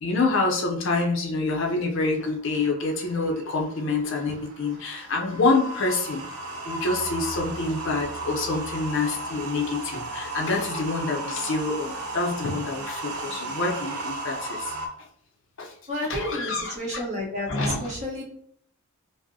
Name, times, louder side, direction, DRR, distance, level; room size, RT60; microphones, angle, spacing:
voice 1, 0.0-6.2 6.6-14.7 15.6-15.7 16.1-17.0 17.5-17.9, left 3 dB, 55° left, 1 dB, 0.6 m, -27 dB
sound 1, 2.2-14.9, right 2 dB, 80° right, 0.7 m, -35 dB
voice 2, 15.9-18.2, left 1 dB, 30° right, -4 dB, 1.1 m, -31 dB
5.0 x 2.1 x 2.7 m, 0.67 s
head